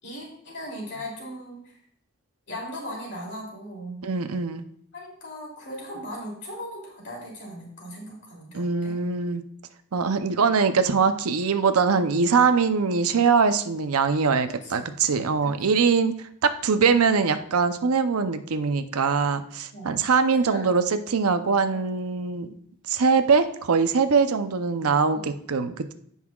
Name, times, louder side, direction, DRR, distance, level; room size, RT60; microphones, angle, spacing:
voice 1, 0.0-1.7 2.5-4.0 4.9-8.9 14.5-14.7 15.4-15.8 19.7-20.0 20.3-20.7 21.7-21.8 25.1-25.3, equal, 55° left, -3 dB, 2.8 m, -38 dB
voice 2, 4.0-4.6 8.5-9.4 9.9-16.1 16.4-22.5 22.9-25.9, right 5 dB, 90° right, 9 dB, 0.6 m, -22 dB
15.5 x 5.6 x 2.3 m, 0.67 s
head